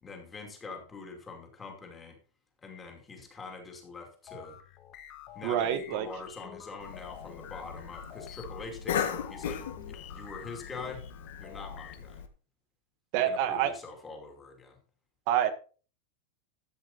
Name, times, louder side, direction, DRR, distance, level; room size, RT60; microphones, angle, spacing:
voice 1, 0.0-2.2 2.6-4.6 5.3-11.1 11.4-12.2 13.1-14.8, left 4 dB, 10° left, 3 dB, 2.6 m, -44 dB
sound 1, 4.3-12.0, left 10 dB, 30° left, 1.3 m, -49 dB
voice 2, 5.4-6.1 13.1-13.7 15.3-15.5, right 10 dB, 40° right, 11 dB, 1.4 m, -27 dB
Cough, 6.8-12.3, left 8 dB, 85° left, 1.6 m, -38 dB
13.0 x 8.6 x 4.1 m, 0.38 s
supercardioid pair, 175°, 0 cm